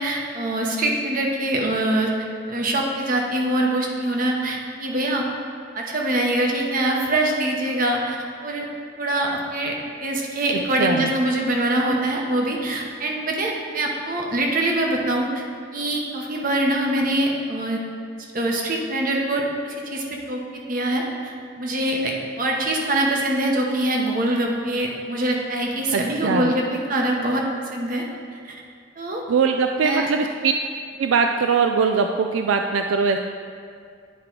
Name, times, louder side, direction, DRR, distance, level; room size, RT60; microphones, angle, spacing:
voice 1, 0.0-2.1 2.5-5.3 5.7-8.7 9.0-15.4 15.7-17.8 18.3-28.0 28.4-28.6 29.0-29.2 29.8-30.1, right 1 dB, 45° right, 0 dB, 1.0 m, -24 dB
voice 2, 10.8-11.1 25.9-26.5 29.3-30.5 31.0-33.2, right 5 dB, 80° right, 5 dB, 0.3 m, -21 dB
9.3 x 3.7 x 4.6 m, 2.3 s
head